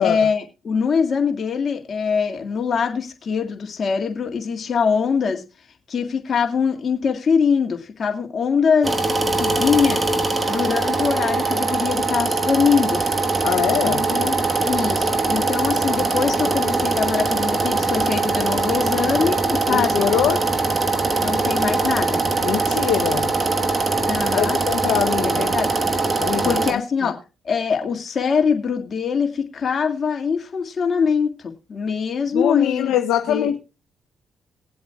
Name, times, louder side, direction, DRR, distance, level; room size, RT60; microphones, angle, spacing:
voice 1, 0.0-5.4 5.9-10.0 10.5-13.0 13.8-14.4 14.6-20.1 21.2-22.2 24.1-24.6 25.2-25.7 26.4-27.2 27.5-32.9 33.3-33.6, left 6 dB, 50° left, 1.9 m, -23 dB
sound 1, 8.8-26.7, right 3 dB, 30° right, 1.2 m, -22 dB
voice 2, 13.4-14.0 19.7-20.4 22.4-23.3 24.4-25.5 26.2-27.1 32.3-33.6, left 10 dB, 80° left, 0.6 m, -23 dB
20.5 x 7.8 x 2.3 m
supercardioid pair, 60°, 0 cm